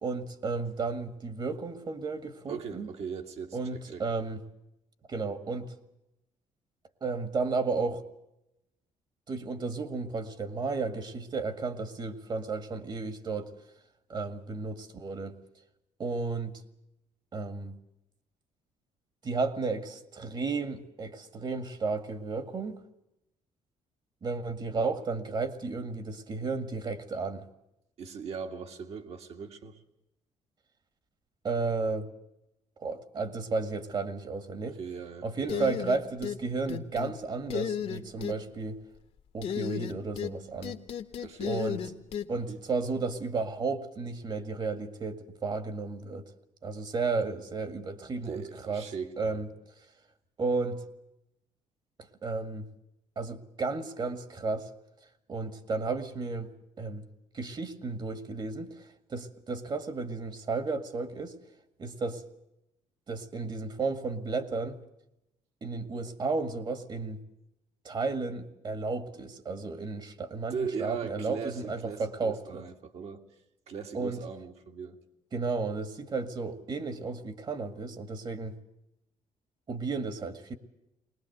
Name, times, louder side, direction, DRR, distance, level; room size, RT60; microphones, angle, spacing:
voice 1, 0.0-2.9 3.5-4.4 5.1-5.7 7.0-8.0 9.3-13.5 14.1-15.3 16.0-16.6 17.3-17.8 19.2-22.8 24.2-27.5 31.4-32.1 32.8-34.8 35.2-38.8 39.3-40.8 41.4-41.8 42.3-46.3 46.6-48.9 49.2-49.5 50.4-50.8 52.2-52.7 53.2-54.7 55.3-56.5 56.8-57.1 57.3-61.4 61.8-62.2 63.1-64.8 65.6-67.2 67.9-72.6 73.9-74.2 75.3-78.6 79.7-80.5, right 4 dB, 40° right, 1.8 m, -33 dB
voice 2, 2.5-4.0 28.0-29.8 34.7-35.7 41.2-41.5 42.5-42.6 48.3-49.4 70.5-73.2 73.7-75.0, right 6 dB, 60° right, 2.2 m, -39 dB
sound 1, 35.5-36.4 36.7-37.1 37.5-38.4 39.4-40.3 40.6-42.3, left 8 dB, 60° left, 1.4 m, -33 dB
21.5 x 19.5 x 8.0 m
cardioid pair, 105°, 12 cm